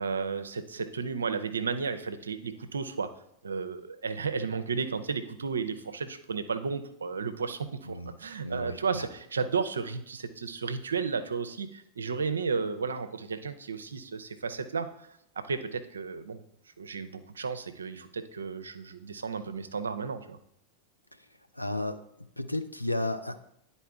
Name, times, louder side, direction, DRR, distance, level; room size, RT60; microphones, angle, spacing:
voice 1, 0.0-3.1 3.4-14.9 15.4-16.4 16.8-20.4, right 5 dB, 70° right, 10 dB, 0.5 m, -33 dB
voice 2, 7.8-8.2 8.4-9.1 21.1-21.2 21.5-23.4, left 1 dB, 90° left, 8 dB, 0.5 m, -34 dB
10.0 x 4.1 x 3.5 m, 0.76 s
figure-of-eight pair, 90°, 0 cm